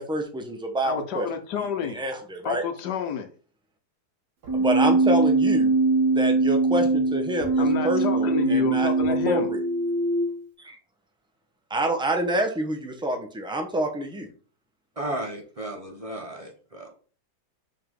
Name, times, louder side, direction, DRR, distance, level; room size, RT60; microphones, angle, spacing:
voice 1, 0.0-1.3 1.8-2.6 4.5-5.7 6.1-8.9 9.3-9.6 10.6-10.8 11.7-14.3, right 1 dB, 5° right, 0.6 m, -27 dB
voice 2, 0.8-2.0 2.4-3.3 7.6-9.5, left 7 dB, 85° left, 1.5 m, -29 dB
Keyboard (musical), 4.4-10.4, right 3 dB, 85° right, 2.0 m, -22 dB
voice 3, 15.0-16.9, right 1 dB, 25° right, 0.9 m, -34 dB
5.8 x 4.5 x 3.7 m
omnidirectional pair, 1.8 m